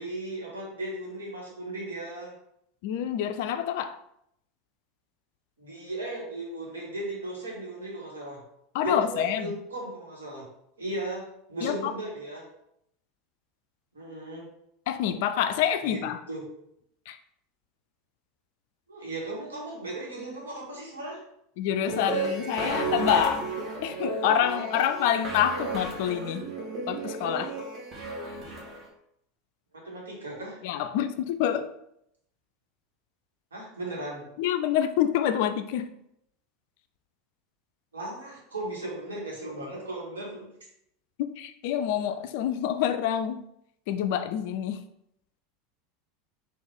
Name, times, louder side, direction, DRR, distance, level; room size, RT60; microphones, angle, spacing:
voice 1, 0.0-2.4 5.6-8.4 8.8-10.4 10.8-12.5 13.9-14.5 15.8-16.4 18.9-21.2 29.7-30.6 33.5-34.3 37.9-40.5, right 2 dB, 75° right, -4 dB, 1.3 m, -36 dB
voice 2, 2.8-4.0 8.7-9.5 11.6-11.9 14.9-16.2 17.1-17.2 21.6-23.5 23.8-26.5 26.9-27.6 30.6-31.7 34.4-35.9 41.2-43.4 43.9-44.8, left 10 dB, 55° left, 10 dB, 0.3 m, -27 dB
sound 1, 21.8-28.8, right 2 dB, 30° right, 1.3 m, -33 dB
3.9 x 2.5 x 3.5 m, 0.75 s
figure-of-eight pair, 80°, 0 cm